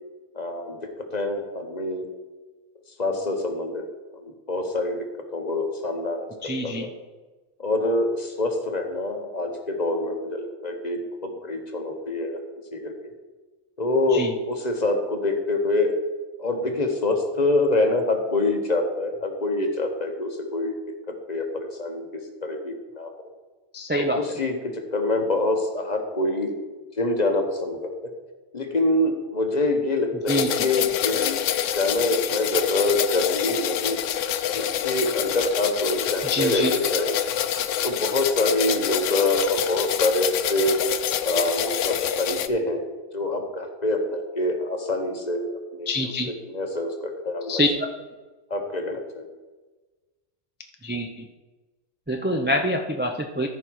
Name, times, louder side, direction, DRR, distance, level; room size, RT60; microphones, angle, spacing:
voice 1, 0.3-2.1 3.0-3.8 4.1-5.0 5.3-6.9 7.6-12.4 12.7-13.1 13.8-16.0 16.4-20.8 21.3-22.1 22.4-23.1 24.0-26.5 27.0-28.1 28.5-31.4 31.7-34.0 34.5-37.2 37.8-40.8 41.2-45.9 46.3-47.6 48.5-49.3, left 2 dB, 35° left, 4 dB, 1.1 m, -26 dB
voice 2, 6.4-6.9 14.1-14.3 23.7-24.2 30.3-30.5 36.3-36.7 45.9-46.3 47.5-47.7 50.8-51.1 52.1-53.5, left 1 dB, 15° right, 3 dB, 0.4 m, -25 dB
sound 1, 30.3-42.5, left 10 dB, 85° left, 0.9 m, -26 dB
14.0 x 5.2 x 4.6 m, 1.2 s
omnidirectional pair, 1.2 m